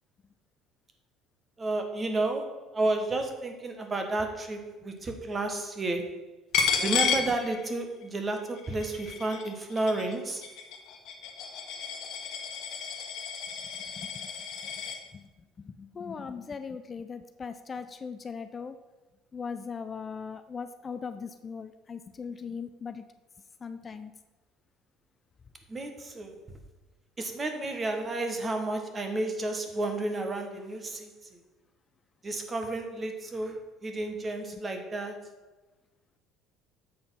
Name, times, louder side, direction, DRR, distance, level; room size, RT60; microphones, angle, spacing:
voice 1, 1.6-6.1 6.8-10.4 25.7-26.3 27.2-31.1 32.2-35.2, right 2 dB, 25° right, 5 dB, 1.2 m, -31 dB
Coin (dropping), 6.5-8.0 8.4-15.0, left 7 dB, 65° left, 1.2 m, -32 dB
voice 2, 15.8-18.8 19.3-23.0 23.6-24.1, left 5 dB, 30° left, 10 dB, 0.4 m, -39 dB
7.8 x 4.1 x 5.6 m, 1.2 s
supercardioid pair, 100°, 0 cm